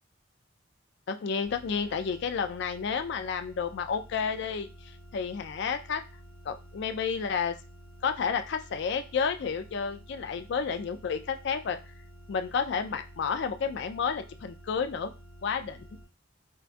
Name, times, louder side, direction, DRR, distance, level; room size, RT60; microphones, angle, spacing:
voice 1, 1.1-6.0 6.4-7.5 8.0-11.8 12.3-15.1 15.4-15.8, left 6 dB, 60° left, 8 dB, 0.4 m, -31 dB
sound 1, 1.4-16.0, right 1 dB, 45° right, 1.1 m, -51 dB
4.5 x 2.3 x 2.5 m, 0.30 s
head